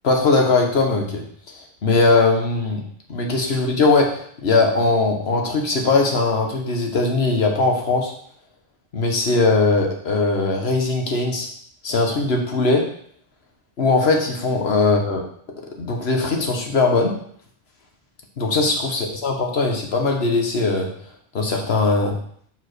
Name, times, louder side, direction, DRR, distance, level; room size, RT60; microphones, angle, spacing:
voice 1, 0.0-1.2 1.5-2.8 3.1-8.1 8.9-11.5 11.8-12.8 13.8-15.2 15.8-17.1 18.4-20.9 21.3-22.1, left 3 dB, 90° left, 2 dB, 1.5 m, -20 dB
5.7 x 4.9 x 6.1 m, 0.62 s
omnidirectional pair, 1.0 m